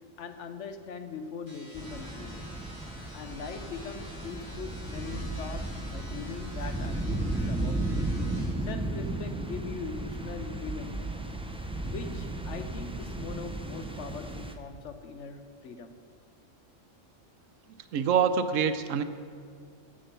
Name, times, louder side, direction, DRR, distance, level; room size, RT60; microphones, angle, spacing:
voice 1, 0.2-2.5 3.1-8.1 8.6-11.1 11.8-15.9, left 5 dB, 70° left, 8 dB, 1.1 m, -41 dB
sound 1, 1.5-8.5, left 1 dB, 40° left, 3.5 m, -49 dB
sound 2, 1.7-14.5, right 2 dB, 10° right, 0.3 m, -34 dB
voice 2, 17.9-19.0, right 7 dB, 85° right, 11 dB, 1.0 m, -25 dB
11.5 x 7.5 x 6.7 m, 2.2 s
omnidirectional pair, 1.3 m